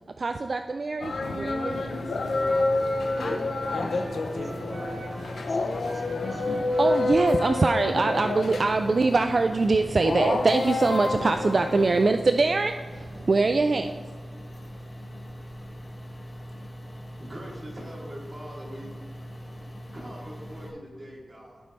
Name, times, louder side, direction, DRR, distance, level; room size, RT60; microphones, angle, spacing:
voice 1, 0.2-2.0 6.8-13.9, right 3 dB, 45° right, 7 dB, 0.3 m, -23 dB
sound 1, 1.0-12.1, left 3 dB, 80° left, 0.7 m, -29 dB
sound 2, 1.7-20.7, equal, 40° left, 1.7 m, -41 dB
Wind instrument woodwind instrument, 2.2-5.4 5.8-9.2, right 2 dB, 80° right, 1.3 m, -42 dB
voice 2, 3.6-6.8, left 1 dB, 25° left, 0 dB, 1.2 m, -40 dB
voice 3, 17.2-18.9 19.9-21.6, equal, 30° right, -5 dB, 2.7 m, -42 dB
15.5 x 5.3 x 3.2 m, 1.5 s
wide cardioid pair, 105°, 0 cm